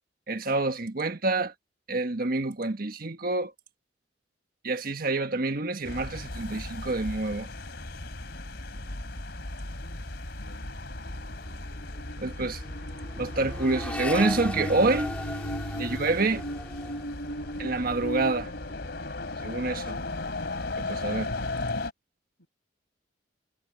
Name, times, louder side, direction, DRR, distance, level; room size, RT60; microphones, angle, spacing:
voice 1, 0.3-1.5 1.9-3.5 4.6-7.5 12.2-12.6 13.2-15.1 15.8-16.4 17.6-18.5 19.4-20.0 20.8-21.3, right 3 dB, 50° right, 1.4 m, -27 dB
sound 1, 5.8-21.9, left 2 dB, 65° left, 3.1 m, -35 dB
voice 2, 10.3-10.7 22.4-22.5, left 1 dB, 80° left, 5.2 m, -51 dB
Accelerating revving vroom, 10.9-11.2 11.4-18.9 19.3-19.9, left 1 dB, 5° left, 2.2 m, -39 dB
head